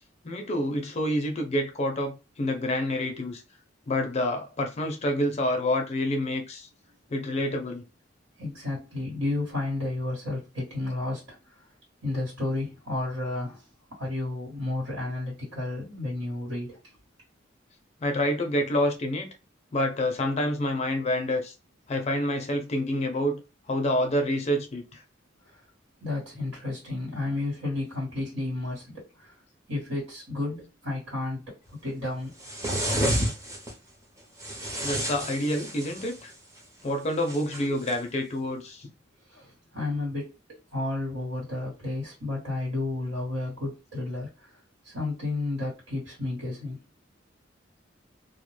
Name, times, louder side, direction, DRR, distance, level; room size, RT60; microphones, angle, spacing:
voice 1, 0.2-3.4 3.9-6.7 7.1-7.8 18.0-19.3 19.7-21.5 21.9-23.4 23.7-25.0 34.8-36.3 36.8-38.9, left 1 dB, 35° left, 0.5 m, -27 dB
voice 2, 8.4-11.6 12.0-17.0 25.4-25.6 26.0-29.3 29.7-32.3 39.2-44.6 44.8-46.8, left 2 dB, 80° right, 1.3 m, -32 dB
sound 1, 32.4-33.7 34.4-36.2 37.3-38.0, right 1 dB, 15° right, 0.6 m, -30 dB
2.2 x 2.1 x 3.0 m
head